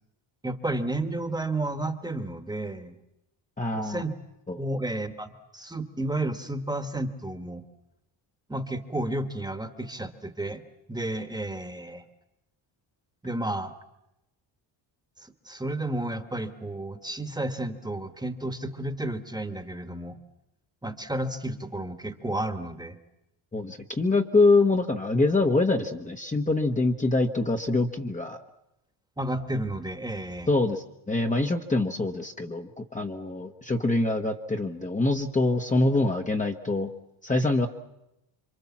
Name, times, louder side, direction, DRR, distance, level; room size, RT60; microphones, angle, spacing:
voice 1, 0.4-2.9 3.7-4.1 4.5-7.6 8.5-10.6 10.9-12.0 13.2-13.7 15.2-20.2 20.8-23.0 29.2-30.5, right 1 dB, 10° right, 7 dB, 1.5 m, -32 dB
voice 2, 3.6-4.0 4.5-4.6 23.5-28.4 30.5-36.9 37.2-37.7, left 2 dB, 15° left, 3 dB, 1.2 m, -25 dB
27.5 x 25.0 x 7.3 m, 0.89 s
cardioid pair, 135°, 48 cm